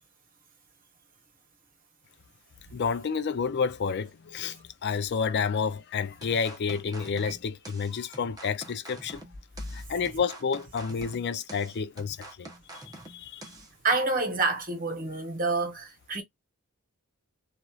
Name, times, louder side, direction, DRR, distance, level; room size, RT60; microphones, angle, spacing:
voice 1, 2.7-9.2 9.7-12.5 12.9-13.5, left 6 dB, 50° left, 0.4 m, -30 dB
sound 1, 6.2-13.7, right 1 dB, 20° right, 1.0 m, -46 dB
voice 2, 13.8-16.2, right 3 dB, 40° right, 1.2 m, -28 dB
3.1 x 2.5 x 2.4 m
head